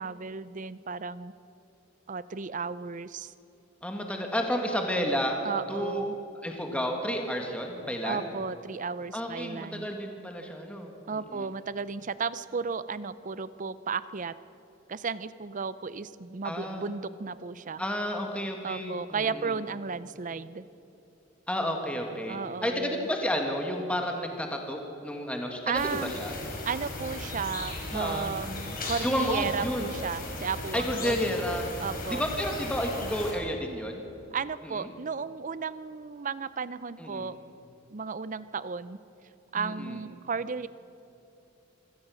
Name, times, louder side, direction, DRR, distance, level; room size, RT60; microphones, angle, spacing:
voice 1, 0.0-1.3 2.1-3.3 5.4-6.1 8.0-10.0 11.1-14.3 14.9-17.8 18.6-20.6 22.3-23.1 25.7-26.1 26.6-31.2 31.8-32.2 34.3-37.4 37.9-39.0 39.5-40.7, right 5 dB, 40° right, 16 dB, 0.6 m, -34 dB
voice 2, 3.8-5.4 5.7-6.0 6.4-8.3 9.1-11.5 16.4-16.9 17.8-19.6 21.5-26.3 27.9-28.3 29.0-29.9 30.7-31.7 32.1-34.0 34.6-34.9 37.0-37.3 39.6-40.0, equal, 5° left, 2 dB, 1.9 m, -31 dB
sound 1, 25.7-33.3, left 2 dB, 50° left, 4.7 m, -37 dB
25.5 x 16.5 x 6.4 m, 3.0 s
head